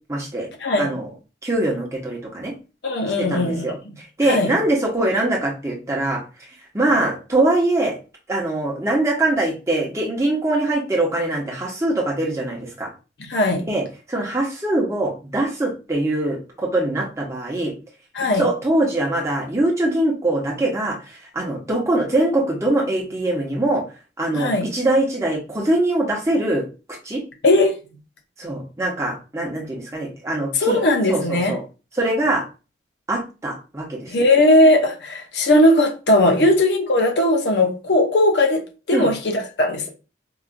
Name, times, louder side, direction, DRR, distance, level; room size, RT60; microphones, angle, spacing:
voice 1, 0.1-0.5 0.8-1.1 1.4-2.5 3.3-3.8 4.2-6.2 6.7-8.0 8.3-12.9 13.7-17.7 18.4-21.0 21.3-23.8 24.2-26.6 27.0-27.2 28.4-30.8 31.1-31.6 32.0-32.4 33.1-34.3 38.9-39.1, right 2 dB, 15° right, 0.9 m, -22 dB
voice 2, 2.8-3.8 4.2-4.5 13.2-13.6 18.1-18.5 24.3-24.7 27.4-27.7 30.5-31.6 34.1-39.9, left 1 dB, 70° left, 0.8 m, -18 dB
4.7 x 2.6 x 2.5 m
head